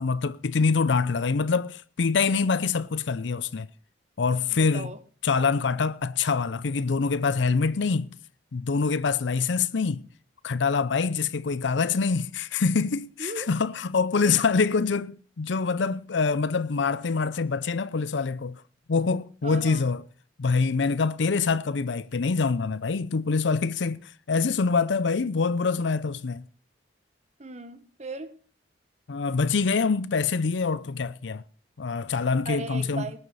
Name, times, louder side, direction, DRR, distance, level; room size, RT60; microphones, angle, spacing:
voice 1, 0.0-3.7 4.2-4.9 5.2-8.1 8.5-10.1 10.4-18.6 18.9-20.0 20.4-26.4 29.1-31.4 31.8-33.1, left 4 dB, 75° left, 0.6 m, -25 dB
voice 2, 4.5-5.0 13.2-13.5 14.2-14.3 19.4-19.8 27.4-28.3 32.5-33.2, right 2 dB, 35° right, 1.4 m, -37 dB
19.0 x 7.2 x 6.4 m
head